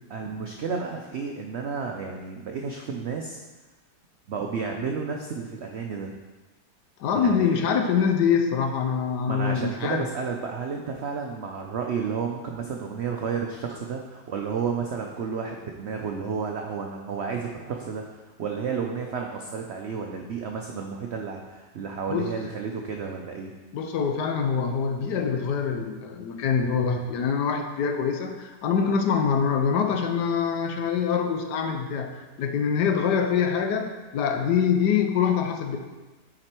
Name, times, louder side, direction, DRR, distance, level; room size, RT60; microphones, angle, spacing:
voice 1, 0.1-3.4 4.3-6.2 7.1-7.6 9.3-23.5, right 5 dB, 90° right, 2 dB, 0.5 m, -32 dB
voice 2, 7.0-10.1 22.1-22.3 23.7-35.8, left 6 dB, 75° left, 5 dB, 1.3 m, -24 dB
7.6 x 5.0 x 4.4 m, 1.2 s
omnidirectional pair, 1.9 m